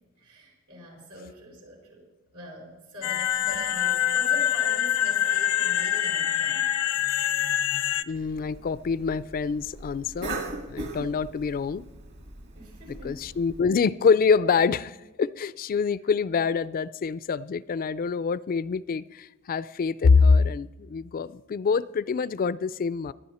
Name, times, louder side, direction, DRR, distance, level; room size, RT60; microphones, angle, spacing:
voice 1, 0.2-2.0 2.3-6.7 12.5-13.3, equal, 85° right, 5.3 m, -43 dB
sound 1, 3.0-8.0, left 11 dB, 85° left, 0.6 m, -25 dB
voice 2, 8.1-10.4 10.7-11.9 13.0-23.1, left 5 dB, 40° left, 0.3 m, -25 dB
Cough, 8.1-13.6, right 2 dB, 50° right, 2.1 m, -40 dB
19.0 x 11.0 x 4.2 m
head